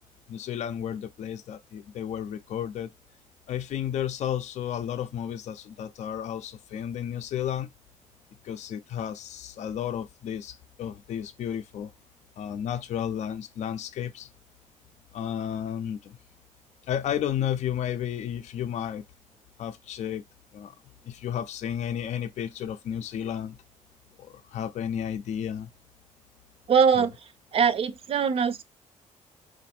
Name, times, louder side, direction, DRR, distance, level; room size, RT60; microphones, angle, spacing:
voice 1, 0.3-2.9 3.5-7.7 8.4-11.9 12.4-14.3 15.1-16.2 16.9-19.0 19.6-20.2 20.5-20.7 21.0-23.6 24.2-25.7 27.0-27.1, left 9 dB, 60° left, 0.5 m, -32 dB
voice 2, 26.7-28.6, right 6 dB, 45° right, 0.6 m, -23 dB
4.1 x 2.6 x 4.2 m
cardioid pair, 175°, 13 cm